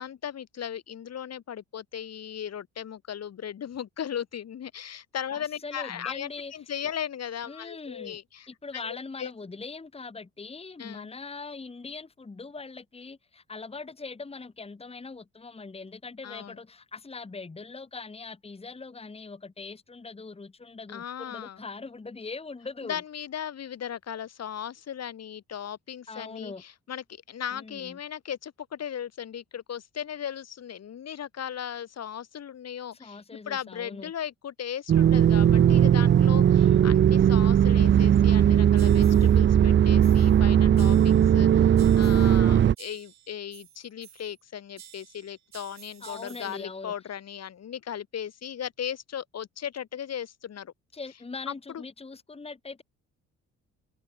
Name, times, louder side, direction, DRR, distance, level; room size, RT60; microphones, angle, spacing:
voice 1, 0.0-8.5 8.8-9.3 10.8-11.1 16.2-16.6 20.9-21.6 22.8-50.7 51.5-51.8, left 9 dB, 55° left, 3.0 m, -37 dB
voice 2, 5.3-6.5 7.5-8.2 8.5-23.0 26.1-26.6 27.5-28.0 32.9-34.1 36.6-36.9 46.0-46.9 50.9-52.8, left 4 dB, 20° left, 1.6 m, -41 dB
sound 1, 34.9-42.7, right 9 dB, 40° right, 0.5 m, -19 dB
sound 2, 38.8-39.4 40.0-40.4 40.8-41.4 41.8-42.4 42.8-44.4 44.8-46.7, right 10 dB, 65° right, 2.9 m, -51 dB
cardioid pair, 90°, 30 cm